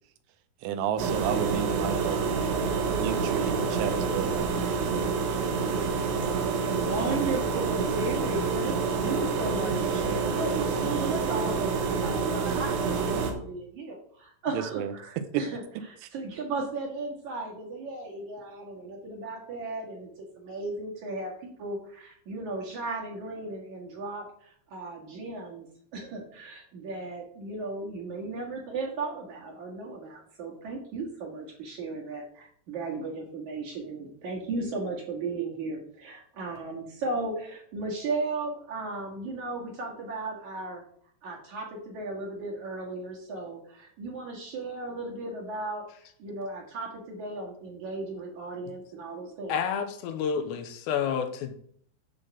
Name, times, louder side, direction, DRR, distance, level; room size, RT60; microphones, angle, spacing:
voice 1, 0.6-2.4 2.9-4.3 14.5-14.9 15.3-15.4 16.0-16.1, right 9 dB, 85° right, 3.3 m, -32 dB
sound 1, 1.0-13.3, right 5 dB, 70° right, 3.5 m, -27 dB
voice 2, 6.6-15.6 16.1-25.7 25.9-40.8 41.2-45.8 46.2-49.5, right 3 dB, 55° right, 2.5 m, -35 dB
voice 3, 49.5-51.5, left 7 dB, 80° left, 2.8 m, -29 dB
11.5 x 3.9 x 7.8 m
omnidirectional pair, 5.4 m